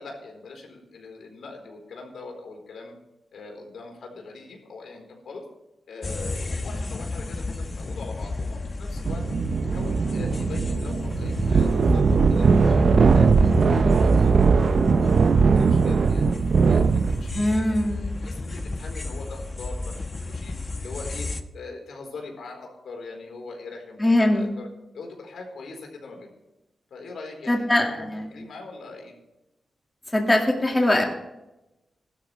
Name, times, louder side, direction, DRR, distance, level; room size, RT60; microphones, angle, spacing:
voice 1, 0.0-2.9 3.3-5.4 5.9-9.2 9.6-15.1 15.5-21.3 21.5-24.7 24.9-26.3 26.9-29.1, left 3 dB, 80° left, 1 dB, 4.3 m, -41 dB
sound 1, 6.0-21.4, left 3 dB, 35° left, 1.0 m, -31 dB
sound 2, 9.0-17.4, right 5 dB, 55° right, 0.5 m, -20 dB
voice 2, 17.4-18.2 24.0-24.6 27.5-28.4 30.1-31.0, left 1 dB, 15° left, 1 dB, 2.2 m, -22 dB
16.0 x 12.5 x 3.4 m, 0.95 s
cardioid pair, 95°, 0 cm